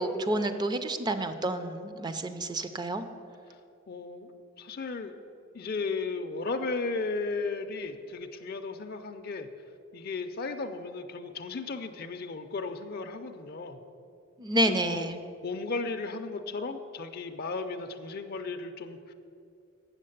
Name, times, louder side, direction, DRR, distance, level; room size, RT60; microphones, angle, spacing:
voice 1, 0.0-3.0 14.4-15.2, right 1 dB, 20° right, 9 dB, 0.4 m, -29 dB
voice 2, 3.9-4.3 4.6-5.1 5.5-9.5 9.9-13.8 14.7-15.1 15.4-19.1, left 3 dB, 45° left, 7 dB, 0.5 m, -35 dB
8.1 x 6.6 x 7.8 m, 2.6 s
head